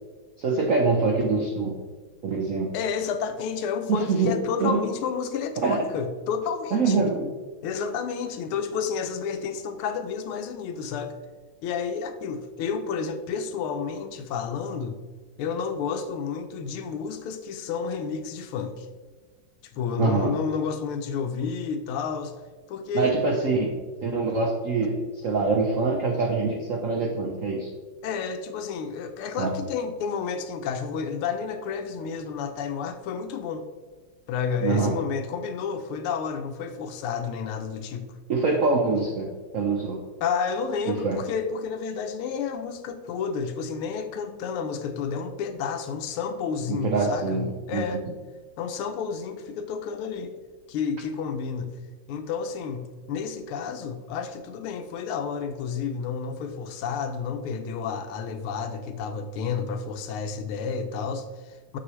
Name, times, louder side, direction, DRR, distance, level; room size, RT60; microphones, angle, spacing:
voice 1, 0.4-1.8 2.2-2.7 3.9-4.3 4.6-4.8 5.6-5.8 6.7-7.3 20.0-20.3 22.9-23.7 24.0-27.7 29.4-29.5 34.6-34.9 38.3-40.0 40.9-41.2 46.7-47.8, right 4 dB, 85° right, 1 dB, 0.7 m, -24 dB
voice 2, 2.7-7.0 7.6-11.1 11.6-15.0 15.4-18.9 19.7-22.3 22.7-23.2 28.0-33.6 34.3-38.1 40.2-48.0 48.6-50.3 50.7-51.8 52.1-61.8, left 6 dB, 80° left, 8 dB, 1.5 m, -30 dB
6.5 x 6.2 x 3.1 m, 1.4 s
omnidirectional pair, 2.4 m